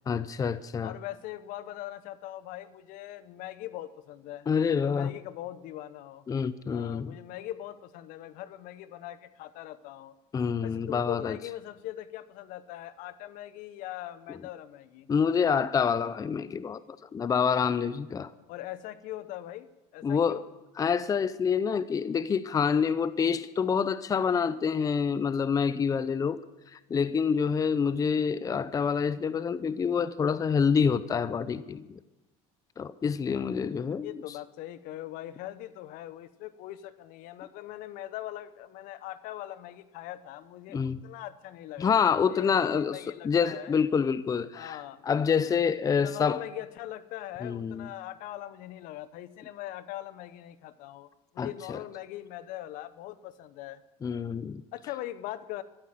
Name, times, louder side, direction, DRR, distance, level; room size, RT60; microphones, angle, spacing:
voice 1, 0.1-0.9 4.5-5.1 6.3-7.2 10.3-11.4 14.3-14.4 15.1-16.8 17.1-18.3 20.0-20.4 20.8-26.4 26.7-32.0 32.8-34.2 40.7-41.0 41.8-46.4 47.4-47.9 51.4-51.8 54.0-54.6, left 6 dB, 25° left, 0.6 m, -27 dB
voice 2, 0.8-4.5 4.8-6.2 6.7-10.1 10.6-15.1 18.5-20.4 34.0-43.7 44.5-45.0 45.9-51.1 51.3-53.8 54.7-55.6, left 14 dB, 65° left, 0.9 m, -41 dB
14.0 x 13.5 x 7.6 m
supercardioid pair, 110°, 15 cm